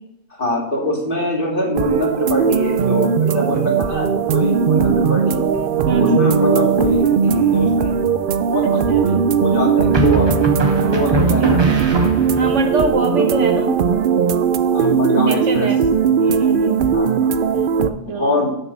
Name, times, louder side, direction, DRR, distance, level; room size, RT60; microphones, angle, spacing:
voice 1, 0.4-5.4 6.0-7.9 8.4-10.3 10.9-11.9 13.1-13.7 14.7-15.7 16.9-17.3 18.0-18.6, left 1 dB, 45° left, -2 dB, 2.6 m, -23 dB
sound 1, 1.7-17.9, right 7 dB, 60° right, 0.6 m, -18 dB
voice 2, 5.8-6.4 8.6-9.0 11.1-11.6 12.4-13.8 15.3-15.8 16.2-17.1 17.8-18.5, right 2 dB, 80° right, 4 dB, 1.6 m, -24 dB
sound 2, 7.3-7.9 9.9-12.6, right 1 dB, 25° right, 1.2 m, -22 dB
6.7 x 6.1 x 7.2 m, 0.78 s
omnidirectional pair, 1.2 m